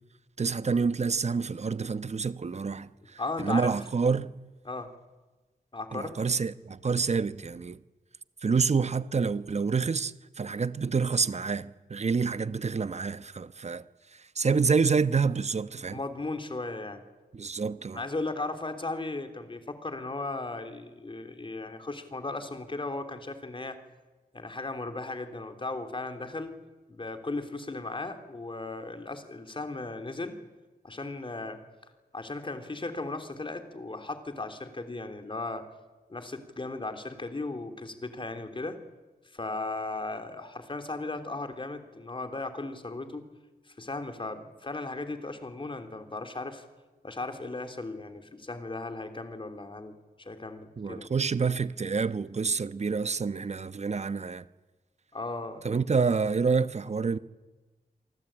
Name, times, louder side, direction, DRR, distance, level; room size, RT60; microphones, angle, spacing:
voice 1, 0.4-4.3 5.9-7.8 8.4-13.8 14.1-16.0 17.3-18.0 50.8-54.4 55.6-57.2, right 5 dB, 45° right, 1.0 m, -28 dB
voice 2, 3.2-3.8 4.6-4.9 5.7-6.2 15.9-17.0 17.9-23.8 24.3-26.6 26.9-30.4 30.8-31.6 32.1-35.6 36.1-38.8 39.3-43.3 43.7-46.6 47.0-51.1 55.1-55.6, left 2 dB, 30° left, 3.3 m, -36 dB
27.5 x 24.0 x 8.9 m
wide cardioid pair, 90°, 16 cm